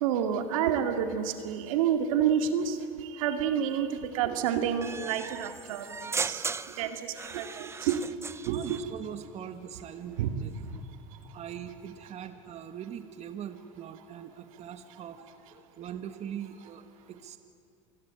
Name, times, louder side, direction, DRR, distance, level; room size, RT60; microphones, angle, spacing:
voice 1, 0.0-6.4 6.8-8.1 8.4-8.8 10.2-10.3, right 8 dB, 80° right, 7 dB, 2.2 m, -29 dB
sound 1, 4.8-8.8, right 4 dB, 15° right, 0.7 m, -37 dB
voice 2, 8.4-10.5 11.3-17.4, right 9 dB, 40° right, 9 dB, 1.6 m, -42 dB
27.0 x 20.5 x 9.1 m, 2.5 s
supercardioid pair, 100°, 17 cm